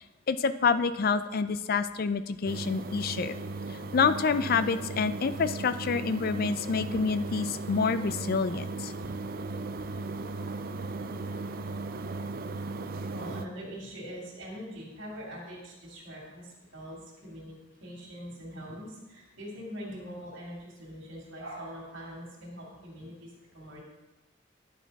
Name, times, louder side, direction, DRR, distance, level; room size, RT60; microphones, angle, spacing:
voice 1, 0.0-3.4 3.9-8.9, left 5 dB, 50° left, 12 dB, 0.4 m, -27 dB
sound 1, 2.5-13.5, right 3 dB, 50° right, 0.4 m, -37 dB
voice 2, 13.1-23.8, equal, 85° right, -4 dB, 2.5 m, -43 dB
10.5 x 5.9 x 4.1 m, 1.1 s
head